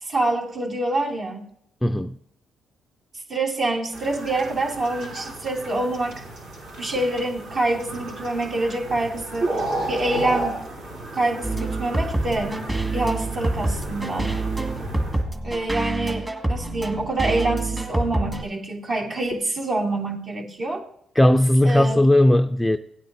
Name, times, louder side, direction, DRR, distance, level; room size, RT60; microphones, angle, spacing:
voice 1, 0.0-1.4 3.3-6.2 6.8-9.6 9.9-10.6 11.1-12.6 12.9-14.4 15.4-20.8 21.6-22.1, right 2 dB, 55° right, 2.8 m, -26 dB
voice 2, 1.8-2.1 21.2-22.8, left 1 dB, 5° left, 0.4 m, -17 dB
sound 1, 3.9-15.2, right 2 dB, 75° right, 4.6 m, -33 dB
sound 2, 11.4-18.4, right 2 dB, 20° right, 2.0 m, -27 dB
17.0 x 9.2 x 2.7 m
cardioid pair, 90°, 0 cm